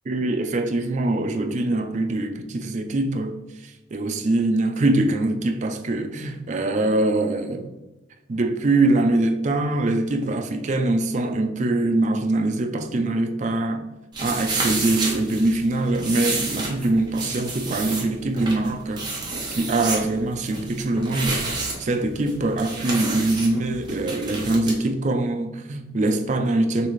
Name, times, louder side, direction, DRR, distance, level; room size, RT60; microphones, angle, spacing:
voice 1, 0.1-3.3 3.9-7.7 8.3-13.9 14.2-19.3 19.6-26.9, right 2 dB, 35° right, 0.4 m, -23 dB
sound 1, 14.1-24.8, right 3 dB, 20° right, 0.9 m, -30 dB
4.0 x 3.2 x 3.1 m
head